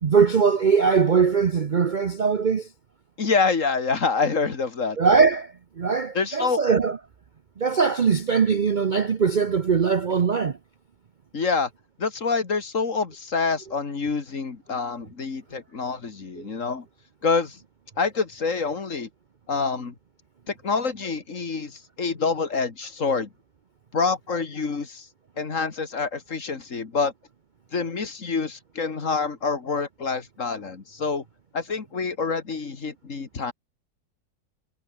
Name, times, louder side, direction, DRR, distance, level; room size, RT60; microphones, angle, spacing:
voice 1, 0.0-2.7 5.0-7.0 7.6-10.6, right 5 dB, 70° right, 0.4 m, -21 dB
voice 2, 3.2-5.0 6.1-6.6 11.3-11.7 12.0-16.9 17.2-17.6 18.0-19.1 19.5-19.9 20.5-23.3 23.9-25.1 25.4-27.1 27.7-31.2 31.5-33.5, left 4 dB, 45° left, 2.4 m, -26 dB
omnidirectional pair, 2.0 m